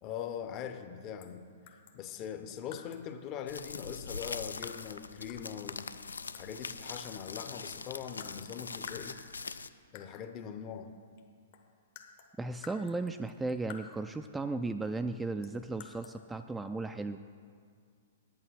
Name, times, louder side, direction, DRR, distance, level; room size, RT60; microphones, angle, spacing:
voice 1, 0.0-1.5 1.9-5.9 6.3-9.2 9.9-10.9, left 8 dB, 35° left, 9 dB, 0.8 m, -41 dB
sound 1, 1.2-1.4 1.7-3.1 4.2-5.0 5.3-6.7 7.0-7.6 8.2-8.6 8.9-9.6 9.9-10.3 11.2-11.3 11.5-14.2 15.4-16.2, left 8 dB, 50° left, 1.1 m, -52 dB
sound 2, 3.5-9.7, left 4 dB, 80° left, 0.4 m, -42 dB
voice 2, 12.4-17.2, right 3 dB, 10° right, 8 dB, 0.3 m, -35 dB
9.0 x 8.9 x 6.2 m, 2.1 s
figure-of-eight pair, 115°, 0 cm